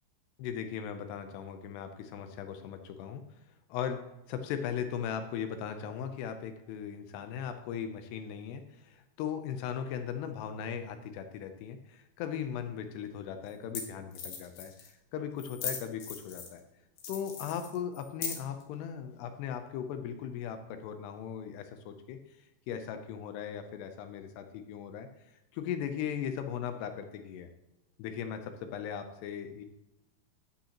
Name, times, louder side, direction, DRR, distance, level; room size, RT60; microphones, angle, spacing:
voice 1, 0.4-3.2 3.7-4.0 4.3-16.6 17.1-22.4 22.7-25.1 25.5-27.5 28.0-29.6, left 8 dB, 80° left, 7 dB, 2.7 m, -38 dB
sound 1, 12.7-12.8 13.5-13.6 13.7-13.8 14.1-14.9 15.4-16.6 17.0-18.6, left 6 dB, 65° left, 2.7 m, -39 dB
11.5 x 8.3 x 2.9 m, 0.93 s
omnidirectional pair, 4.9 m